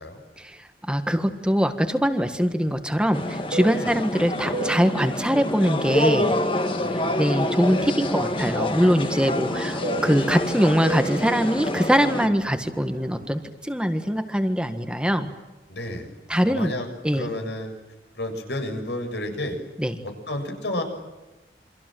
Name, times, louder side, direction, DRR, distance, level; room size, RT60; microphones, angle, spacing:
voice 1, 0.4-6.3 6.9-15.3 16.3-16.7 17.0-17.3 19.8-20.0, equal, 5° right, 7 dB, 1.6 m, -23 dB
Fixed-wing aircraft airplane, 1.9-7.3 7.6-13.5, right 3 dB, 45° right, 1.1 m, -37 dB
sound 1, 3.1-12.3, left 1 dB, 30° left, 2.1 m, -27 dB
voice 2, 6.8-7.4 15.7-16.1 16.5-16.9 17.1-17.7 18.1-19.6 20.0-20.8, left 1 dB, 80° left, 6 dB, 7.1 m, -31 dB
29.0 x 25.5 x 7.7 m, 1.1 s
head